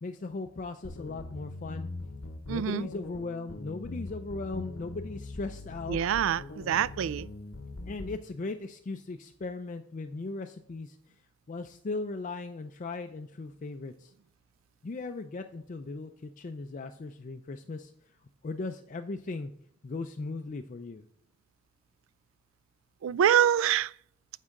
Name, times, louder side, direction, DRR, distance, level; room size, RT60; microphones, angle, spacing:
voice 1, 0.0-1.9 2.5-6.0 7.9-11.0 11.5-14.1 14.8-17.9 18.4-19.5 19.8-21.0, left 3 dB, 40° left, 0.4 m, -38 dB
sound 1, 0.8-8.2, left 2 dB, 85° left, 0.8 m, -42 dB
voice 2, 2.5-2.9 5.9-7.3 23.0-23.9, right 9 dB, 70° right, 0.3 m, -25 dB
9.6 x 7.3 x 3.7 m
head